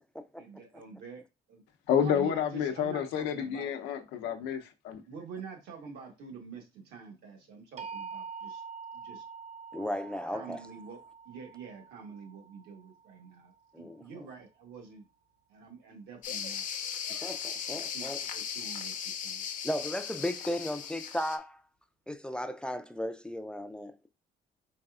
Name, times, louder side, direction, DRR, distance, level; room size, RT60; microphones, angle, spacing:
voice 1, 0.4-1.2 1.5-1.6 2.0-3.7 5.1-8.6 8.9-9.2 10.3-11.0 11.2-15.1 15.5-16.7 17.7-19.5, right 6 dB, 80° right, 1.4 m, -47 dB
voice 2, 1.9-5.0, left 8 dB, 90° left, 0.7 m, -29 dB
sound 1, 7.8-13.7, right 5 dB, 40° right, 0.8 m, -45 dB
voice 3, 9.7-10.6 13.7-14.3 17.2-18.2 19.6-21.6 22.1-23.9, left 1 dB, 5° left, 0.3 m, -35 dB
sound 2, 16.2-21.4, left 8 dB, 50° left, 0.6 m, -37 dB
4.1 x 3.3 x 2.4 m
cardioid pair, 110°, 17 cm